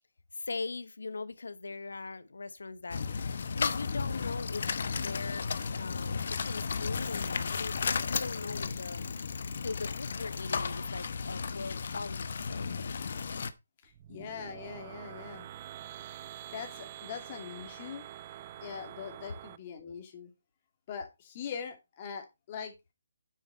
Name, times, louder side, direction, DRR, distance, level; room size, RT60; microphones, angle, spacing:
voice 1, 0.3-9.1 9.6-12.7, left 3 dB, 80° left, 1.1 m, -41 dB
sound 1, 2.9-13.5, left 5 dB, 55° left, 1.0 m, -34 dB
voice 2, 13.8-15.5 16.5-18.0 18.6-20.3 20.9-22.7, left 7 dB, 30° left, 2.6 m, -42 dB
sound 2, 13.8-19.6, right 12 dB, 30° right, 0.6 m, -46 dB
9.6 x 7.4 x 4.4 m
hypercardioid pair, 155°, 0 cm